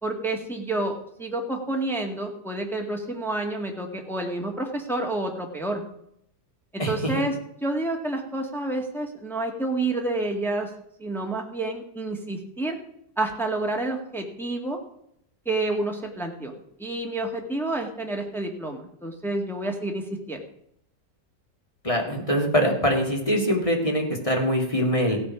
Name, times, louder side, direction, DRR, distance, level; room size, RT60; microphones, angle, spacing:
voice 1, 0.0-5.8 6.7-7.4 7.6-10.7 11.0-12.8 13.2-14.8 15.5-16.5 16.8-20.4, right 2 dB, ahead, 1 dB, 1.8 m, -29 dB
voice 2, 21.8-25.2, equal, 20° left, 1 dB, 2.7 m, -23 dB
16.0 x 9.0 x 6.1 m, 0.72 s
omnidirectional pair, 1.9 m